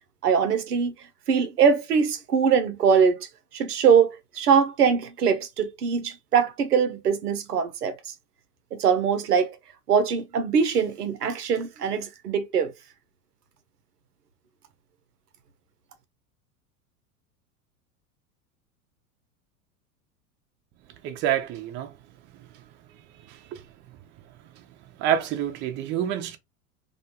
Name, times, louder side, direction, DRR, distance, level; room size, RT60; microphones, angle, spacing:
voice 1, 0.2-0.9 1.3-3.3 3.5-7.9 8.7-9.6 9.9-12.7, right 6 dB, 90° right, 0.6 m, -22 dB
voice 2, 21.0-21.9 23.5-23.6 25.0-26.4, right 10 dB, 25° right, 0.4 m, -27 dB
2.4 x 2.2 x 2.7 m
hypercardioid pair, 90°, 45 cm